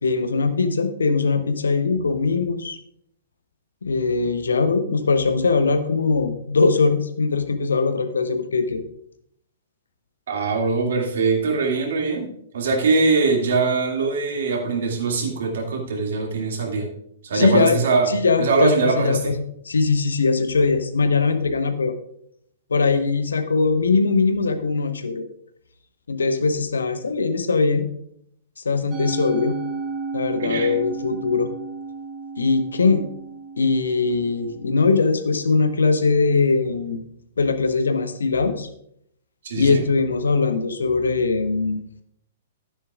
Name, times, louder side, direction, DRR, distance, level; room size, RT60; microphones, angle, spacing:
voice 1, 0.0-2.8 3.8-8.8 17.3-17.8 18.1-19.4 19.6-21.9 22.7-25.2 26.1-27.9 28.6-29.6 30.1-31.5 32.4-33.0 33.6-37.0 37.4-38.7 39.5-41.8, left 4 dB, 70° left, 9 dB, 0.9 m, -21 dB
voice 2, 10.3-12.3 12.5-16.9 17.2-18.1 18.4-19.2 30.4-30.7 39.4-39.8, right 4 dB, 55° right, 1 dB, 2.3 m, -22 dB
Musical instrument, 28.9-35.3, right 4 dB, 25° right, 1.4 m, -33 dB
12.0 x 9.9 x 2.4 m, 0.70 s
figure-of-eight pair, 110°, 0 cm